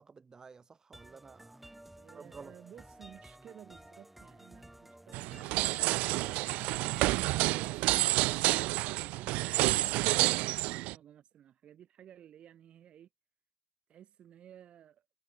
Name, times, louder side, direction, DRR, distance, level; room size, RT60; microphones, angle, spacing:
voice 1, 0.0-1.8 2.1-2.5, right 5 dB, 30° right, 2.5 m, -52 dB
sound 1, 0.9-8.3, right 1 dB, 5° right, 1.2 m, -54 dB
voice 2, 1.9-8.0 8.5-13.1 13.9-15.0, right 10 dB, 55° right, 2.7 m, -55 dB
sound 2, 5.1-10.9, right 21 dB, 85° right, 0.3 m, -29 dB
cardioid pair, 105°, 2 cm